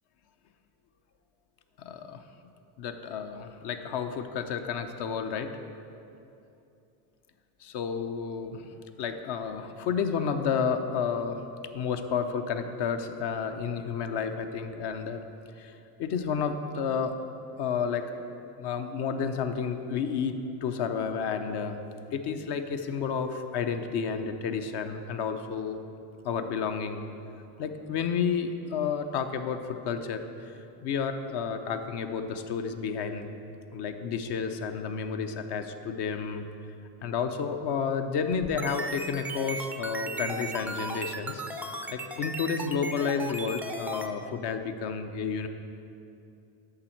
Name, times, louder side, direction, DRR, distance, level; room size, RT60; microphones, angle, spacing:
voice 1, 1.8-2.2 2.8-5.5 7.6-8.6 9.0-11.4 11.7-15.2 15.6-15.7 16.0-17.1 17.6-18.2 18.6-20.3 20.6-21.8 22.1-25.8 26.2-27.0 27.6-30.5 30.8-33.3 33.7-36.4 37.0-41.4 41.9-45.5, left 6 dB, 55° left, 7 dB, 0.8 m, -31 dB
sound 1, 38.3-44.1, right 2 dB, 5° right, 0.4 m, -36 dB
8.7 x 6.5 x 4.5 m, 2.7 s
hypercardioid pair, 80°, 49 cm